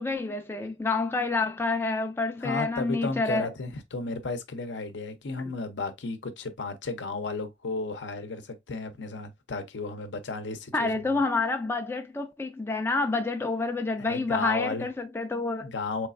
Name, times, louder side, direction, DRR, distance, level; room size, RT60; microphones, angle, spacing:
voice 1, 0.0-3.5 10.7-15.7, left 3 dB, 15° left, 0.3 m, -28 dB
voice 2, 2.4-11.0 14.0-14.9 15.6-16.1, left 3 dB, 80° left, 0.6 m, -34 dB
4.0 x 3.1 x 2.4 m
head